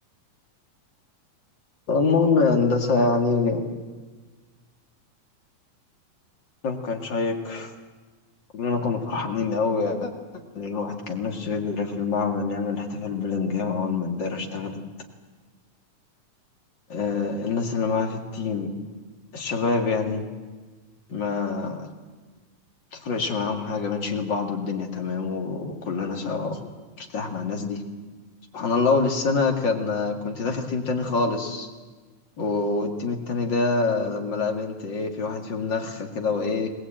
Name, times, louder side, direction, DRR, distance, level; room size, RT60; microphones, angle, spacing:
voice 1, 1.9-3.7 6.6-7.7 8.5-10.1 10.5-14.8 16.9-18.7 19.3-20.3 21.1-21.9 22.9-26.6 27.0-27.8 28.5-31.7 32.4-36.7, left 4 dB, 40° left, 3 dB, 2.5 m, -25 dB
20.5 x 19.5 x 8.9 m, 1.4 s
omnidirectional pair, 3.4 m